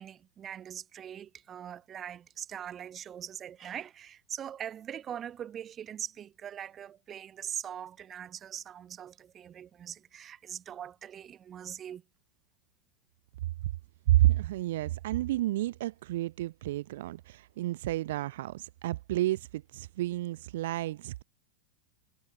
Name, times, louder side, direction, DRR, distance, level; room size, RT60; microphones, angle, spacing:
voice 1, 0.0-12.0, right 9 dB, 25° right, 6.8 m, -42 dB
voice 2, 14.1-21.2, right 15 dB, 55° right, 4.0 m, -30 dB
figure-of-eight pair, 90°, 0 cm